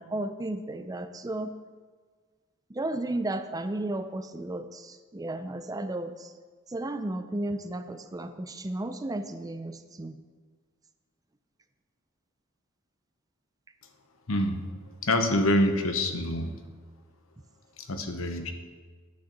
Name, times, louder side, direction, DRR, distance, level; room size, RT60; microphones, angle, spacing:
voice 1, 0.0-1.5 2.7-6.3 6.7-10.2, right 1 dB, 20° right, 9 dB, 0.5 m, -34 dB
voice 2, 14.3-14.6 15.0-16.5 17.9-18.5, left 1 dB, 90° left, 7 dB, 1.0 m, -26 dB
9.7 x 6.4 x 6.0 m, 1.5 s
head